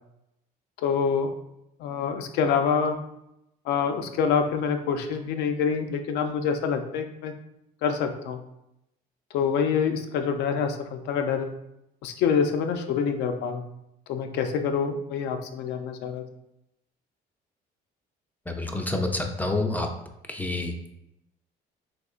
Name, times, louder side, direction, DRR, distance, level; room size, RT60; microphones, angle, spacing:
voice 1, 0.8-1.3 1.8-3.0 3.7-7.3 7.8-8.4 9.3-11.5 12.0-13.6 14.1-16.2, left 6 dB, 85° left, 6 dB, 0.4 m, -26 dB
voice 2, 18.5-19.9 20.3-20.7, left 2 dB, 10° left, 3 dB, 0.3 m, -28 dB
3.7 x 2.8 x 2.3 m, 0.83 s
cardioid pair, 110°, 17 cm